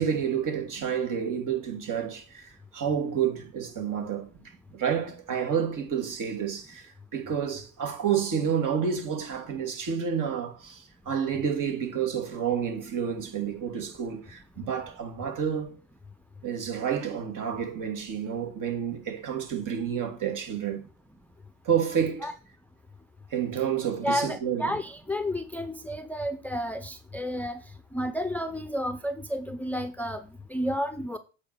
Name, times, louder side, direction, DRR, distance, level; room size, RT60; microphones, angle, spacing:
voice 1, 0.0-15.7 16.4-20.8 21.6-22.3 23.3-24.7, right 8 dB, 50° right, 2.7 m, -29 dB
voice 2, 24.0-27.6 27.9-31.2, equal, 5° left, 0.7 m, -31 dB
8.3 x 4.8 x 5.9 m
hypercardioid pair, 75°, 41 cm